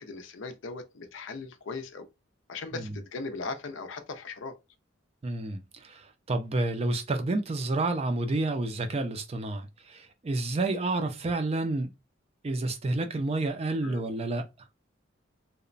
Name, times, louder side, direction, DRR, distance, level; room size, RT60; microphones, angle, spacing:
voice 1, 0.0-2.1 2.5-4.6 13.8-14.1, left 3 dB, 70° left, 0.5 m, -38 dB
voice 2, 5.2-11.9 12.4-14.5, right 2 dB, 30° right, 0.4 m, -30 dB
2.9 x 2.1 x 2.5 m
head